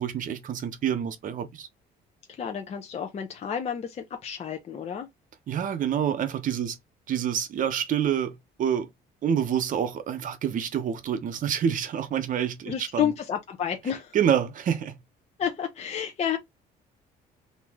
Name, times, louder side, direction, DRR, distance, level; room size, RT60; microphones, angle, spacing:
voice 1, 0.0-1.7 5.5-6.8 7.1-8.9 9.2-13.1 14.1-15.0, right 9 dB, 50° right, 0.8 m, -27 dB
voice 2, 2.3-5.1 12.7-14.2 15.4-16.4, left 8 dB, 40° left, 0.7 m, -30 dB
3.0 x 2.6 x 3.5 m
cardioid pair, 110°, 17 cm